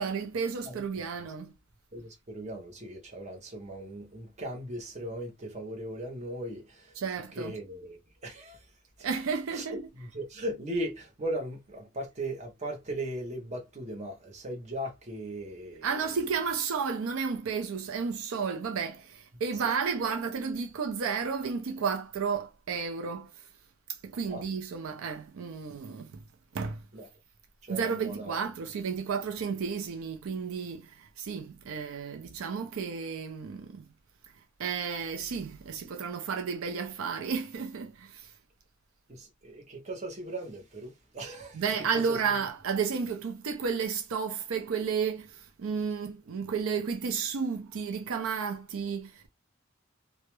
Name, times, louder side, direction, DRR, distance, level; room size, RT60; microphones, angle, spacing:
voice 1, 0.0-1.5 7.0-7.6 9.0-9.9 15.8-23.5 24.0-26.2 26.5-26.9 27.7-33.9 34.6-38.3 41.5-49.3, right 6 dB, 80° right, 0.4 m, -32 dB
voice 2, 1.9-7.0 7.4-8.7 9.0-9.1 9.5-9.7 10.0-15.9 19.6-19.7 24.3-24.4 26.9-27.1 27.6-28.4 39.1-41.6 42.1-42.2, right 1 dB, 35° right, 0.7 m, -38 dB
2.3 x 2.0 x 2.9 m
head